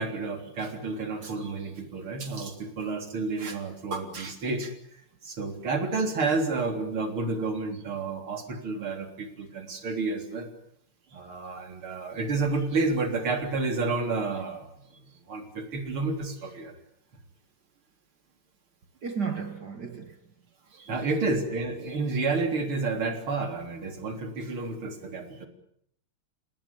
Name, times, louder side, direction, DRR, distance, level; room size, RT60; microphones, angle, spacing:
voice 1, 0.0-4.7 5.2-10.5 11.1-14.8 15.3-16.7 20.7-25.5, right 3 dB, 70° right, 4.5 m, -30 dB
voice 2, 19.0-20.2 20.9-21.1, right 5 dB, 50° right, 2.3 m, -34 dB
28.5 x 19.0 x 8.6 m
omnidirectional pair, 2.4 m